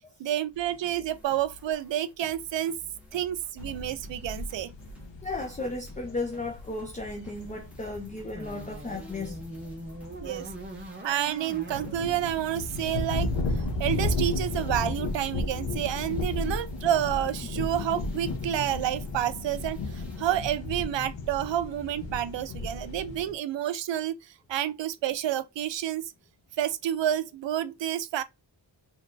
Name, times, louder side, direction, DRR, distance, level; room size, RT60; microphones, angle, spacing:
voice 1, 0.2-2.8 3.1-4.7 10.2-10.5 11.0-26.1 26.6-28.2, right 11 dB, 75° right, 0.5 m, -29 dB
sound 1, 0.5-20.4, left 2 dB, 5° right, 1.4 m, -55 dB
sound 2, 3.6-10.8 11.3-23.3, left 2 dB, 80° left, 0.9 m, -34 dB
voice 2, 5.2-9.4, left 2 dB, 15° left, 0.5 m, -35 dB
sound 3, 8.3-13.5, right 2 dB, 25° right, 0.7 m, -43 dB
4.1 x 3.2 x 2.5 m
wide cardioid pair, 145°, 44 cm